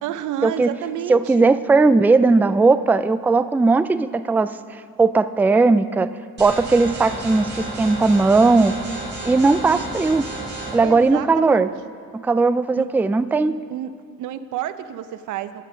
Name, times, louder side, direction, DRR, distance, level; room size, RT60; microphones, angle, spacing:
voice 1, 0.0-1.5 10.8-11.7 12.7-12.9 13.7-13.9 14.2-15.6, right 11 dB, 80° right, 12 dB, 0.7 m, -30 dB
voice 2, 1.1-6.1 6.4-8.7 9.2-10.3 10.7-11.7 12.1-13.6, right 3 dB, 5° right, 13 dB, 0.3 m, -18 dB
sound 1, 6.4-10.8, right 2 dB, 35° right, 4.1 m, -32 dB
23.0 x 8.6 x 5.2 m, 2.1 s
cardioid pair, 90°, 30 cm